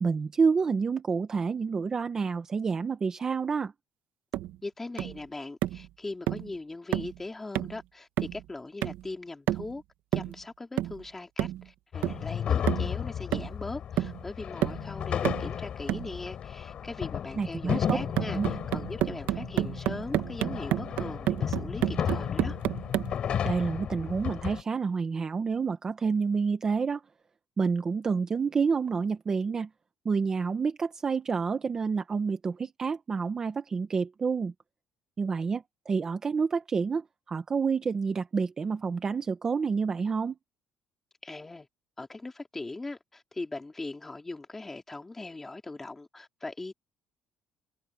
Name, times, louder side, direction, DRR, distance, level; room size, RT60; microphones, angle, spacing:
voice 1, 0.0-3.7 17.4-18.0 18.3-18.5 23.4-27.0 27.6-29.7 30.0-34.5 35.2-40.4, right 5 dB, 20° right, 0.8 m, -28 dB
sound 1, 4.3-4.6 5.0-5.2 5.6-5.9 6.3-6.5 6.9-7.2 7.6-7.8 8.2-8.5 8.8-9.1 9.5-9.8 10.1-10.4 10.8-11.0 11.4-11.6 12.0-12.3 12.7-12.9 13.3-13.7 14.0-14.2 14.6-14.9 15.3-15.5 15.9-16.1 17.9-23.2, right 14 dB, 80° right, 1.2 m, -30 dB
voice 2, 4.6-9.8 10.1-22.6 41.2-41.7 42.0-46.7, left 2 dB, 10° left, 3.1 m, -40 dB
sound 2, 11.9-24.6, left 9 dB, 40° left, 5.1 m, -33 dB
cardioid pair, 180°, 3 cm